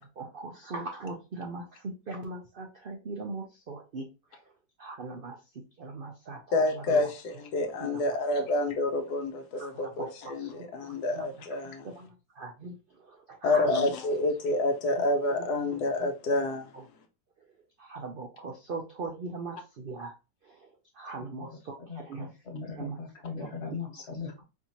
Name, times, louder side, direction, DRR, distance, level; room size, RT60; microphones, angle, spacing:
voice 1, 0.2-4.1 4.8-5.4 5.8-6.4 6.9-7.1 9.6-9.7 10.0-10.1 10.4-11.2 11.8-12.1 12.4-12.7 13.3-13.9 17.9-20.1 21.0-22.3 22.8-23.0, right 3 dB, 75° right, 0.5 m, -39 dB
voice 2, 6.5-11.9 13.4-16.7, left 2 dB, 75° left, 1.2 m, -28 dB
voice 3, 21.8-24.4, left 5 dB, 45° left, 1.6 m, -39 dB
4.4 x 2.8 x 2.8 m
omnidirectional pair, 1.7 m